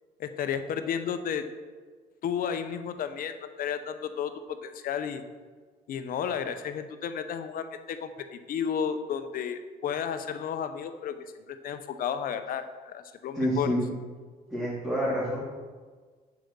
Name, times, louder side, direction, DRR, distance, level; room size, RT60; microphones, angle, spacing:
voice 1, 0.2-1.5 2.2-5.2 5.9-13.7, left 8 dB, 55° left, 10 dB, 0.8 m, -33 dB
voice 2, 13.3-13.9 14.5-15.4, equal, 5° right, -9 dB, 2.7 m, -28 dB
7.8 x 4.9 x 6.8 m, 1.5 s
cardioid pair, 110°, 17 cm